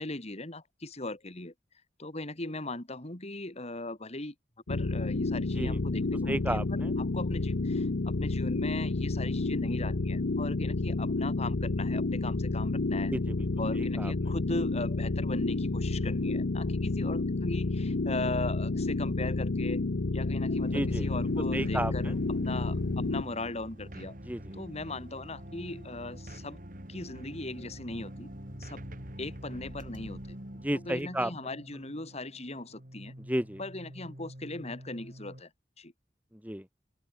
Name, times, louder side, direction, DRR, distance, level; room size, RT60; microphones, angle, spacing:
voice 1, 0.0-1.5 2.0-4.3 4.7-6.6 7.0-13.1 13.6-19.8 20.1-22.1 22.4-24.2 24.5-26.6 26.9-28.3 28.6-28.8 29.2-30.4 30.7-33.1 33.6-35.5 35.8-35.9, left 2 dB, 35° left, 3.1 m, -39 dB
sound 1, 4.7-23.2, left 2 dB, 70° left, 0.8 m, -30 dB
voice 2, 6.3-6.9 13.1-13.5 13.8-14.1 20.7-21.1 21.5-22.1 24.3-24.5 30.6-31.3 33.3-33.6 36.3-36.7, right 1 dB, 10° right, 4.1 m, -32 dB
sound 2, 20.6-35.4, equal, 50° right, 6.4 m, -46 dB
open air
head